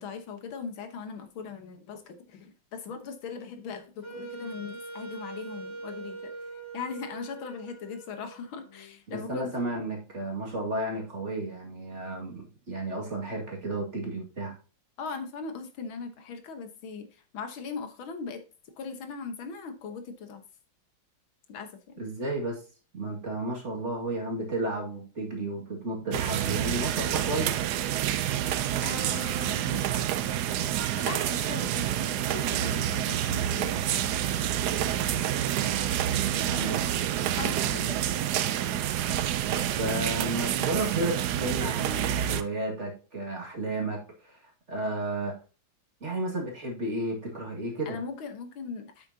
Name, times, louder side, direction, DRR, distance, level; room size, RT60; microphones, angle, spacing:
voice 1, 0.0-6.3 6.7-9.5 15.0-18.4 18.8-20.4 21.5-22.0 28.8-29.8 30.9-34.1 37.4-38.3 47.9-49.1, left 5 dB, 75° left, 7 dB, 1.9 m, -39 dB
Wind instrument woodwind instrument, 4.0-9.0, right 3 dB, 25° left, 0.5 m, -42 dB
voice 2, 9.1-14.5 22.0-22.6 22.9-27.6 35.7-36.8 39.5-44.4 44.7-45.3 46.0-48.0, right 2 dB, 35° right, 0 dB, 2.3 m, -33 dB
sound 1, 26.1-42.4, right 11 dB, 70° right, 0.9 m, -28 dB
8.6 x 7.4 x 2.8 m, 0.35 s
omnidirectional pair, 2.3 m